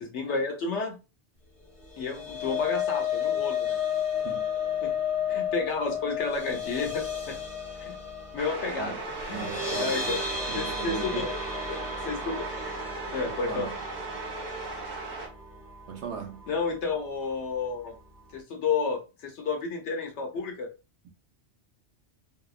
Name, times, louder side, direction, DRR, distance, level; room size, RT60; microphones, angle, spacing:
voice 1, 0.0-1.0 2.0-3.8 4.8-4.9 5.3-7.4 7.9-8.0 8.3-8.9 9.3-9.5 9.8-10.2 10.5-11.3 11.7-12.5 13.1-13.7 16.5-18.0 18.3-20.7, left 4 dB, 75° left, 1.0 m, -31 dB
sound 1, 1.8-16.1 16.4-16.7 17.0-17.1, left 6 dB, ahead, 0.7 m, -33 dB
sound 2, 8.4-15.3, right 3 dB, 50° right, 0.6 m, -37 dB
voice 2, 9.3-11.3 13.2-13.8 15.9-16.4, right 6 dB, 70° right, 0.9 m, -39 dB
2.7 x 2.0 x 2.3 m
omnidirectional pair, 1.2 m